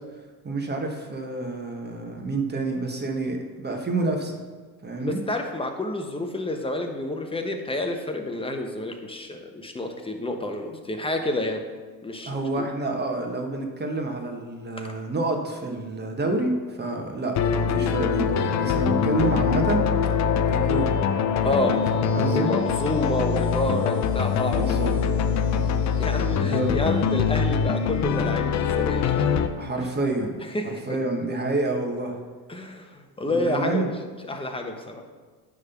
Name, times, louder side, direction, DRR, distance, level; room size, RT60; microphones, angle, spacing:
voice 1, 0.4-4.4 4.8-5.2 12.3-19.9 20.5-21.0 21.4-21.7 22.1-22.5 24.6-24.9 25.5-25.8 26.3-26.8 29.6-32.2 33.3-33.9, right 2 dB, 25° right, 3 dB, 1.4 m, -28 dB
voice 2, 5.0-11.6 12.0-12.7 14.8-14.9 21.4-21.9 22.2-24.9 26.0-29.3 29.8-29.9 30.5-31.0 32.5-33.9 34.3-35.0, left 1 dB, 10° left, 4 dB, 1.0 m, -29 dB
sound 1, 17.4-29.5, left 7 dB, 40° left, 0.6 m, -23 dB
9.6 x 3.7 x 5.8 m, 1.4 s
supercardioid pair, 80°, 44 cm